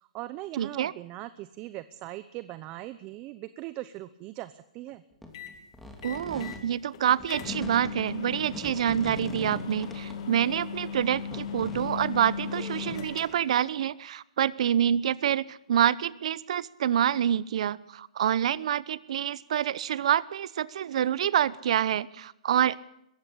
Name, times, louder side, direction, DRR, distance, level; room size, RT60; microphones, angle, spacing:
voice 1, 0.0-5.0, right 16 dB, 25° right, 14 dB, 0.7 m, -40 dB
voice 2, 0.6-0.9 6.0-22.8, right 10 dB, 60° right, 20 dB, 0.9 m, -27 dB
sound 1, 5.2-6.6 7.0-10.6 11.0-13.0, left 1 dB, ahead, 2.8 m, -42 dB
sound 2, 5.3-5.6 6.0-6.6 6.9-7.0 7.3-13.6, left 6 dB, 45° left, 2.6 m, -38 dB
21.5 x 15.5 x 8.6 m, 0.80 s
hypercardioid pair, 155°, 4 cm